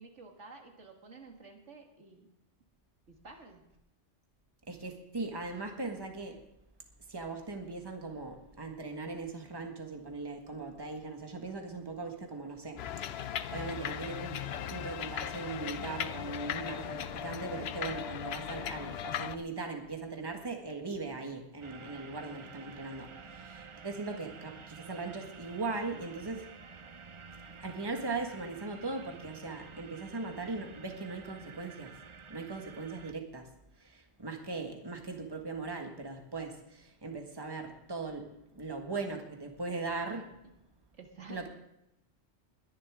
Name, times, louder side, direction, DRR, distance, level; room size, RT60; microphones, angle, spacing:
voice 1, 0.0-2.3 3.1-3.6 41.0-41.5, right 4 dB, 80° right, 2 dB, 2.1 m, -51 dB
voice 2, 4.7-6.4 7.1-14.4 14.7-27.0 27.6-32.0 32.3-40.3 41.3-41.5, right 3 dB, 20° right, 3 dB, 1.6 m, -39 dB
sound 1, 12.8-19.4, left 9 dB, 65° left, 0.8 m, -38 dB
sound 2, 21.6-33.1, right 5 dB, 40° right, 0.4 m, -50 dB
21.0 x 11.0 x 3.6 m, 0.84 s
omnidirectional pair, 1.2 m